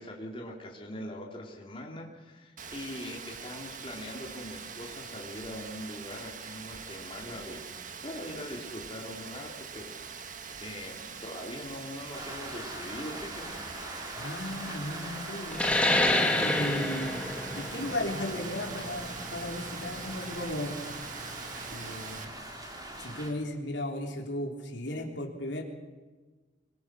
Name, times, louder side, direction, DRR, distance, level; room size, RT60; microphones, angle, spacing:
voice 1, 0.0-7.7 8.0-13.6, left 1 dB, 30° left, -1 dB, 3.4 m, -42 dB
Rain, 2.6-22.2, right 6 dB, 45° right, 1.6 m, -43 dB
Rain 2, 12.1-23.3, right 1 dB, 20° right, 4.0 m, -42 dB
voice 2, 14.1-15.7 16.3-17.2 17.5-20.8 21.7-22.3 23.0-25.6, left 1 dB, 75° left, 1 dB, 3.6 m, -35 dB
sound 1, 15.5-20.7, left 1 dB, 5° left, 2.4 m, -28 dB
26.0 x 22.0 x 6.3 m, 1.3 s
head